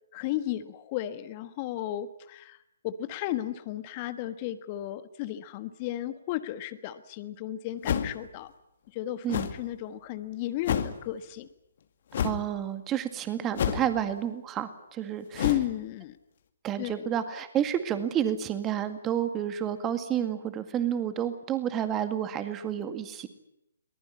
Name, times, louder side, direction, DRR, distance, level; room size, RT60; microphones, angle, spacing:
voice 1, 0.1-2.6 2.8-8.5 8.9-9.3 9.5-11.5 15.4-16.2 16.8-17.1, left 13 dB, 30° left, 12 dB, 1.4 m, -34 dB
sound 1, 7.8-8.3 9.3-9.6 10.6-11.0 12.1-12.4 13.6-14.0 15.3-15.7, left 8 dB, 50° left, 2.2 m, -29 dB
voice 2, 12.2-15.5 16.6-23.3, right 10 dB, 20° right, 10 dB, 2.0 m, -30 dB
23.5 x 20.0 x 9.9 m, 0.84 s
figure-of-eight pair, 135°, 0 cm